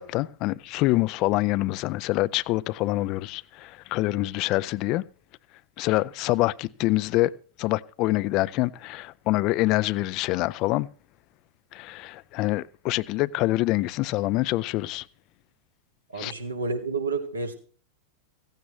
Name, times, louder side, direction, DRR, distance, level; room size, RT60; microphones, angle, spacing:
voice 1, 0.0-5.0 5.8-7.3 7.6-10.9 11.7-15.0 16.2-16.3, left 18 dB, 40° left, 0.5 m, -25 dB
voice 2, 16.1-17.5, right 3 dB, 80° right, 2.3 m, -30 dB
16.5 x 15.5 x 3.2 m
figure-of-eight pair, 90°, 0 cm